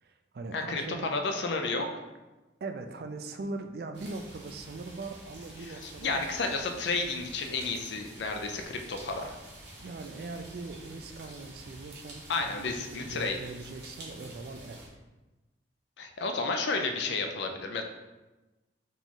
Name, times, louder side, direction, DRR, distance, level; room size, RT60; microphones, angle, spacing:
voice 1, 0.0-1.2 2.6-6.3 9.8-14.8, right 3 dB, 55° right, 6 dB, 0.4 m, -41 dB
voice 2, 0.5-1.9 5.6-9.4 12.3-13.4 16.0-17.8, left 3 dB, 70° left, 4 dB, 0.5 m, -32 dB
sound 1, 3.9-14.9, right 1 dB, 75° right, 1.1 m, -48 dB
4.0 x 3.0 x 3.8 m, 1.1 s
head